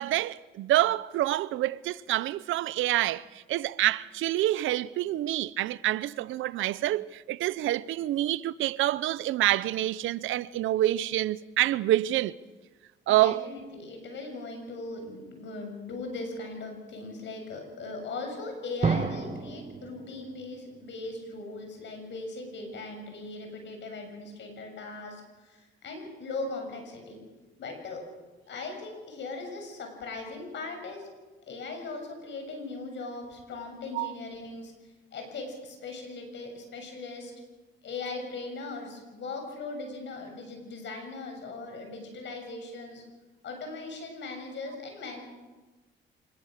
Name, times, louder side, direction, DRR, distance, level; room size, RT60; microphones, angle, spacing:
voice 1, 0.0-12.3 13.1-13.4 33.9-34.1, right 14 dB, 85° right, 0.7 m, -27 dB
voice 2, 13.1-27.2 27.6-28.1 28.5-31.1 31.5-34.7 35.1-37.3 37.8-43.0 43.4-45.2, left 3 dB, 65° left, 7.3 m, -39 dB
Drum, 18.8-21.5, right 4 dB, 35° right, 1.7 m, -32 dB
26.0 x 21.0 x 6.6 m
cardioid pair, 90°, 20 cm